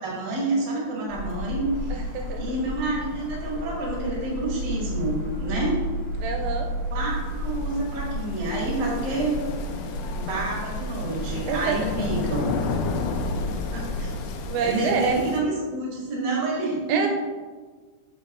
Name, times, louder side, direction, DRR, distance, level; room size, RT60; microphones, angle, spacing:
voice 1, 0.0-1.9 2.4-5.8 6.9-9.3 10.1-12.4 13.7-14.1 14.6-17.1, right 2 dB, 45° right, -4 dB, 1.4 m, -28 dB
sound 1, 1.1-14.5, left 1 dB, 65° left, 1.9 m, -32 dB
voice 2, 1.9-2.4 5.5-5.6 6.2-6.7 11.5-12.1 14.5-15.1 16.9-17.1, right 6 dB, 85° right, 3 dB, 2.7 m, -27 dB
sound 2, 6.5-15.4, left 4 dB, 85° left, 2.9 m, -33 dB
8.7 x 6.5 x 2.5 m, 1.5 s
omnidirectional pair, 5.4 m